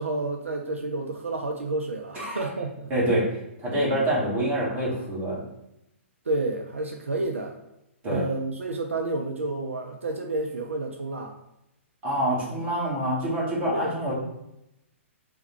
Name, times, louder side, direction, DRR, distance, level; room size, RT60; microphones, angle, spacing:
voice 1, 0.0-2.9 6.3-7.6 8.0-11.4 12.1-12.2 13.7-14.0, right 2 dB, 75° right, 3 dB, 0.4 m, -30 dB
voice 2, 2.9-3.2 3.6-5.4 8.0-8.2 12.0-14.1, right 1 dB, 20° right, -6 dB, 1.4 m, -26 dB
3.4 x 2.2 x 4.3 m, 0.86 s
figure-of-eight pair, 115°, 7 cm